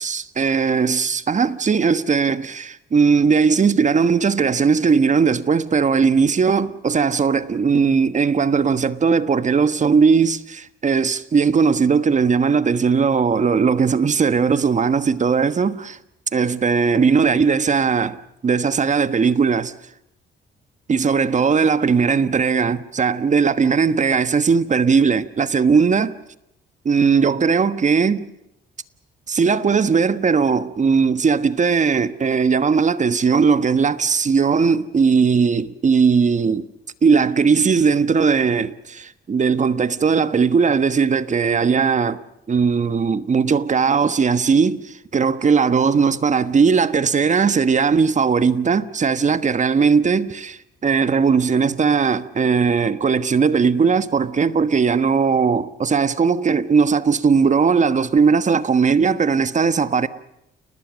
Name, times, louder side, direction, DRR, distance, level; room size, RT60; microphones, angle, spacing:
voice 1, 0.0-16.0 16.3-18.2 18.4-19.7 20.9-26.1 26.8-28.3 29.3-36.7 37.0-42.2 42.5-60.1, right 5 dB, 40° right, 1.3 m, -18 dB
30.0 x 19.5 x 6.4 m
cardioid pair, 90°, 20 cm